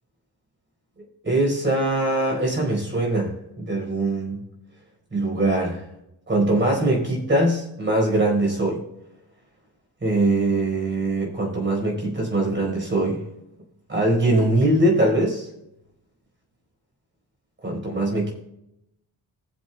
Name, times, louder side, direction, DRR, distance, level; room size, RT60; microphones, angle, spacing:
voice 1, 1.2-4.4 5.1-5.8 6.3-8.8 10.0-13.2 13.9-15.5 17.6-18.3, right 2 dB, 30° right, 0 dB, 4.6 m, -22 dB
20.5 x 7.6 x 2.3 m, 0.85 s
wide cardioid pair, 135°, 40 cm